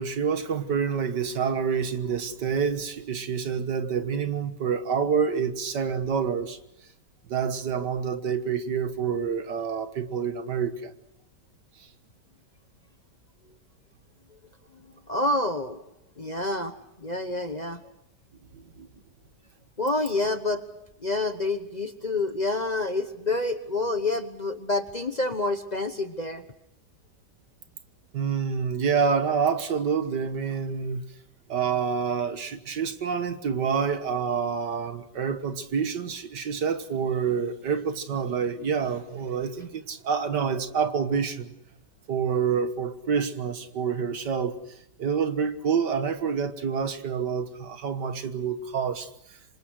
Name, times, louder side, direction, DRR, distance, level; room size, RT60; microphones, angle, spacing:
voice 1, 0.0-6.6 7.3-10.9 18.5-18.9 28.1-31.0 31.5-41.5 42.1-44.6 45.0-49.1, right 6 dB, 70° right, 2.0 m, -27 dB
voice 2, 15.1-15.8 16.2-16.7 17.0-17.8 19.8-20.6 21.0-26.4, left 2 dB, 30° left, 1.0 m, -28 dB
27.0 x 25.5 x 6.4 m
omnidirectional pair, 1.9 m